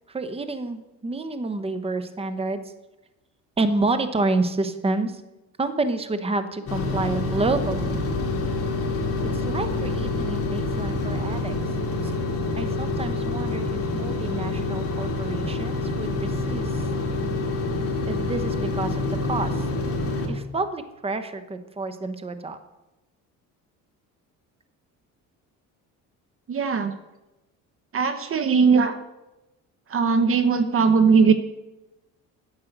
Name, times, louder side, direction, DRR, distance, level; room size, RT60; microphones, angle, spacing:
voice 1, 0.1-2.6 3.6-5.2 5.6-8.0 9.5-11.6 12.0-12.1 12.6-16.9 18.1-19.6 20.3-22.6, right 3 dB, 15° right, 10 dB, 1.0 m, -29 dB
sound 1, 6.7-20.3, left 2 dB, 45° left, 3.0 m, -27 dB
voice 2, 26.5-26.9 27.9-29.0 29.9-31.3, right 5 dB, 40° right, 10 dB, 0.9 m, -19 dB
10.0 x 7.5 x 8.0 m, 1.0 s
cardioid pair, 110°, 33 cm